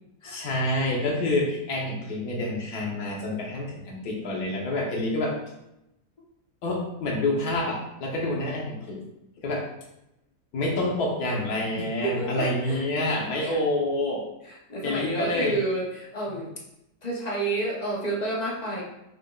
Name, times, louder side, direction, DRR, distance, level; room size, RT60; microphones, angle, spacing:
voice 1, 0.2-5.3 6.6-9.0 9.4-9.6 10.5-14.2 14.8-15.6, left 1 dB, 70° left, -1 dB, 1.5 m, -27 dB
voice 2, 11.8-13.6 14.4-16.5 17.0-18.8, right 2 dB, 35° left, -3 dB, 0.7 m, -30 dB
5.3 x 4.3 x 2.3 m, 0.86 s
omnidirectional pair, 1.7 m